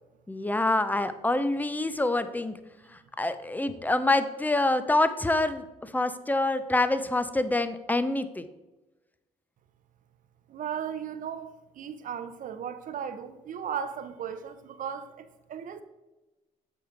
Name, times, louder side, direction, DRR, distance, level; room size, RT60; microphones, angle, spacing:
voice 1, 0.3-2.5 3.2-8.4, left 2 dB, 10° left, 0.7 m, -26 dB
voice 2, 10.5-15.8, right 8 dB, 55° right, 0.8 m, -36 dB
7.8 x 4.9 x 5.1 m
supercardioid pair, 65°, 16 cm